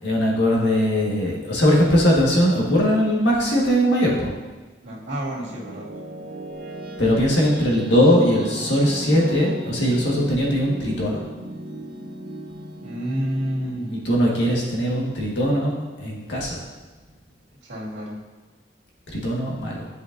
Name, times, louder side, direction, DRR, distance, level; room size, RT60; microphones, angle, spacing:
voice 1, 0.0-4.3 7.0-11.2 14.0-16.6 19.1-19.9, equal, 75° left, -3 dB, 1.6 m, -20 dB
voice 2, 4.8-5.9 12.8-14.0 17.6-18.2, equal, 80° right, -7 dB, 2.2 m, -29 dB
sound 1, 5.1-15.9, equal, 55° right, 0.7 m, -37 dB
9.7 x 5.2 x 2.6 m, 1.3 s
head